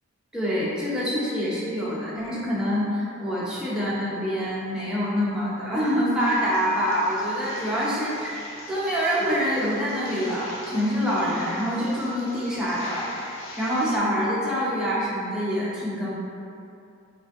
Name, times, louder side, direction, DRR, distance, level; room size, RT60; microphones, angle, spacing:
voice 1, 0.3-8.4 8.7-13.1 13.6-16.2, equal, 5° right, -9 dB, 0.7 m, -26 dB
sound 1, 6.2-14.0, left 2 dB, 65° left, 0.5 m, -43 dB
5.0 x 2.6 x 2.6 m, 2.6 s
head